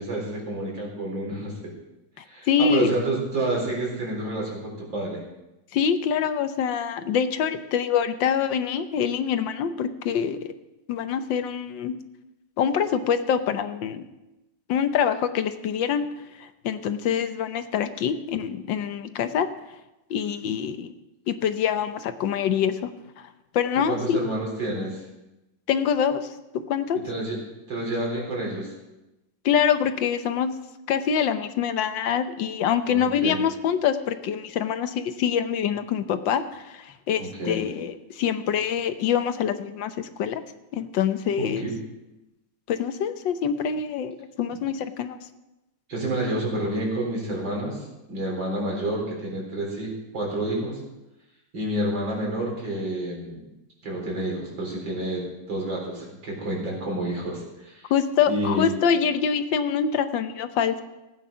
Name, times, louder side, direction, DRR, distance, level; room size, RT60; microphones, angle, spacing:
voice 1, 0.0-1.7 2.2-5.2 23.9-25.0 27.0-27.4 27.7-28.7 32.9-33.4 37.2-37.6 41.4-41.8 45.9-50.8 51.5-53.4 53.8-57.9 58.3-58.7, right 1 dB, 85° right, -2 dB, 4.7 m, -29 dB
voice 2, 2.2-2.9 5.7-10.5 10.9-12.0 12.6-14.0 14.7-16.1 16.4-19.5 20.1-20.9 21.3-22.9 23.2-23.3 23.5-24.3 25.7-26.2 26.7-27.0 29.4-30.6 30.9-40.4 40.7-41.7 42.7-45.2 57.9-60.8, left 7 dB, 80° left, 10 dB, 1.6 m, -25 dB
16.0 x 9.1 x 5.6 m, 0.99 s
omnidirectional pair, 2.0 m